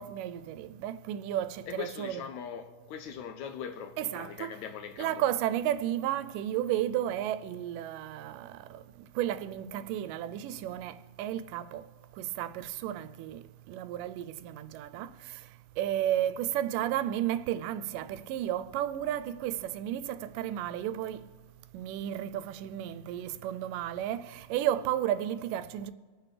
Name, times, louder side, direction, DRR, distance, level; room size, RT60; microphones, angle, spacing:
voice 1, 0.0-2.2 4.0-4.5 5.0-11.8 12.2-15.4 15.8-21.2 21.7-25.9, right 11 dB, 90° right, 2.2 m, -33 dB
voice 2, 1.7-5.3, left 8 dB, 80° left, 1.8 m, -41 dB
25.0 x 9.3 x 3.3 m
omnidirectional pair, 3.7 m